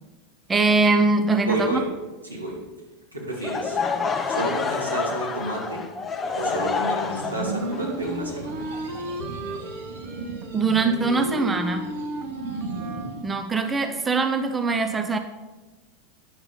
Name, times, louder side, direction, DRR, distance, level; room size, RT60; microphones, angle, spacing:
voice 1, 0.5-1.8 10.5-11.9 13.2-15.2, right 3 dB, 15° right, 8 dB, 0.6 m, -22 dB
voice 2, 1.5-1.9 2.2-2.6 3.1-3.8 4.3-5.8 6.4-8.7, right 1 dB, 85° right, -4 dB, 2.8 m, -30 dB
Laughter / Crowd, 3.3-9.3, left 5 dB, 20° left, 0.8 m, -28 dB
sound 1, 7.1-13.2, right 4 dB, 70° right, 1.8 m, -35 dB
Wind instrument woodwind instrument, 7.4-13.2, right 1 dB, 40° right, 0.9 m, -35 dB
9.6 x 7.1 x 5.4 m, 1.2 s
figure-of-eight pair, 85°, 0 cm